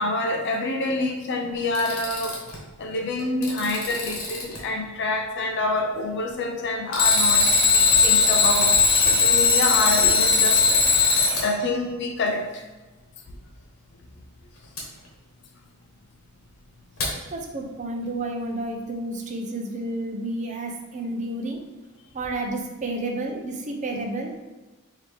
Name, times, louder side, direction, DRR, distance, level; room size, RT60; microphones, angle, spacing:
voice 1, 0.0-2.4 2.8-12.6, left 2 dB, 55° left, 2 dB, 0.5 m, -27 dB
Alarm, 1.6-2.6 3.2-4.6 6.9-11.5 14.8-14.9 17.0-17.1, left 4 dB, 80° left, 1.1 m, -19 dB
voice 2, 17.3-21.6 22.1-24.3, right 2 dB, 35° right, 1 dB, 0.6 m, -30 dB
4.6 x 2.8 x 3.4 m, 1.1 s
head